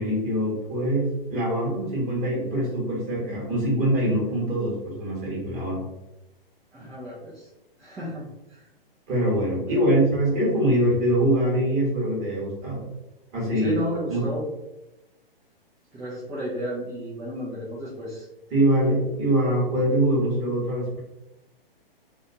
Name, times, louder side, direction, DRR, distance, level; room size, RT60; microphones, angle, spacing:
voice 1, 0.0-5.8 9.1-12.9 13.3-13.8 14.1-14.3 18.5-21.0, right 1 dB, 25° right, -4 dB, 1.2 m, -23 dB
voice 2, 6.7-7.5 7.8-8.7 9.7-10.1 13.6-14.5 15.9-18.3, equal, 10° right, -10 dB, 0.4 m, -33 dB
2.5 x 2.3 x 2.7 m, 0.94 s
hypercardioid pair, 125°, 30 cm